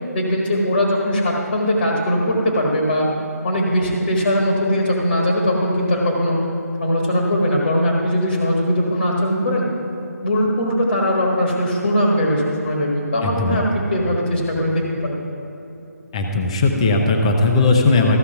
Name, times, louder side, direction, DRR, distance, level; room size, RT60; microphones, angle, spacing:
voice 1, 0.1-3.1 3.4-6.4 6.8-9.7 10.2-15.2, equal, 45° left, -1 dB, 1.5 m, -20 dB
voice 2, 13.2-13.6 16.1-18.2, left 3 dB, 20° left, 3 dB, 0.5 m, -17 dB
14.5 x 6.6 x 5.8 m, 3.0 s
hypercardioid pair, 175°, 9 cm